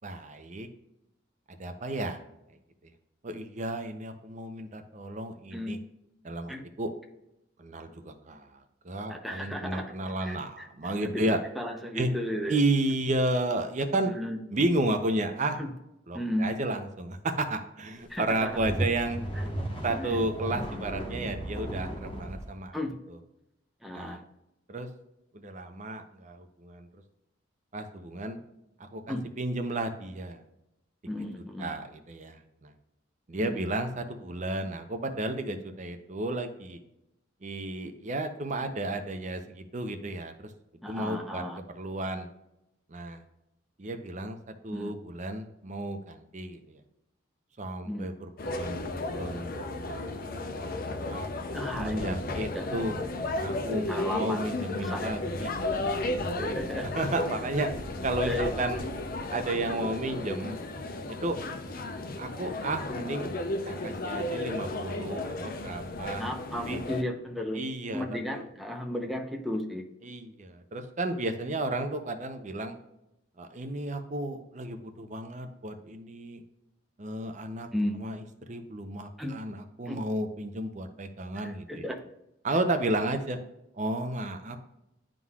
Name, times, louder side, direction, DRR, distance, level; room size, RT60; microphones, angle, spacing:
voice 1, 0.0-0.7 1.6-2.2 3.2-5.8 6.2-6.9 7.6-8.6 8.8-11.4 11.9-12.1 12.5-14.1 14.5-15.6 16.1-19.2 19.8-22.8 23.1-23.2 23.9-24.2 24.7-24.9 25.3-26.9 27.7-28.4 28.9-30.4 31.6-32.7 33.3-36.8 37.4-40.5 40.9-41.4 41.7-42.3 42.9-43.2 43.8-44.4 44.6-46.8 47.6-50.4 51.1-51.3 51.8-53.0 53.4-56.0 56.8-57.7 58.0-58.8 59.3-60.6 61.1-61.4 62.2-63.3 63.7-66.3 66.7-66.8 67.5-68.5 70.0-72.8 73.4-76.4 77.0-77.7 78.0-81.9 82.4-83.4 83.7-84.6, right 2 dB, 35° right, 7 dB, 0.6 m, -32 dB
voice 2, 9.1-9.9 10.2-10.7 11.0-12.6 14.1-14.4 15.6-15.7 16.1-16.5 18.1-18.6 22.7-23.0 23.8-24.2 29.1-29.2 31.1-31.7 33.4-33.7 40.8-41.6 44.7-44.9 47.9-48.1 51.5-52.3 52.5-52.7 53.9-54.4 54.8-55.1 56.4-56.9 58.2-58.6 66.2-67.6 67.9-69.8 77.7-78.0 79.2-79.4 79.9-80.0 81.4-82.0, left 1 dB, ahead, 2 dB, 0.7 m, -34 dB
sound 1, 18.2-22.5, equal, 25° left, 1.2 m, -34 dB
sound 2, 48.4-67.0, left 2 dB, 45° left, 0.6 m, -34 dB
11.0 x 3.8 x 2.4 m, 0.86 s
head